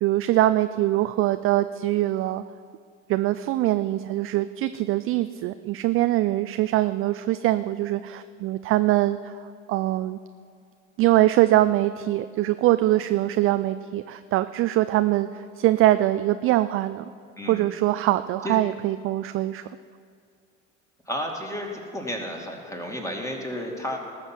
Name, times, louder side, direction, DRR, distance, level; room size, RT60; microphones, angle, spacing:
voice 1, 0.0-2.4 3.1-10.2 11.0-17.0 17.5-19.6, right 15 dB, 35° right, 12 dB, 0.4 m, -23 dB
voice 2, 17.4-17.7 18.4-18.6 21.1-24.0, equal, 10° left, 1 dB, 2.3 m, -32 dB
18.5 x 6.8 x 6.0 m, 2.3 s
figure-of-eight pair, 60°, 38 cm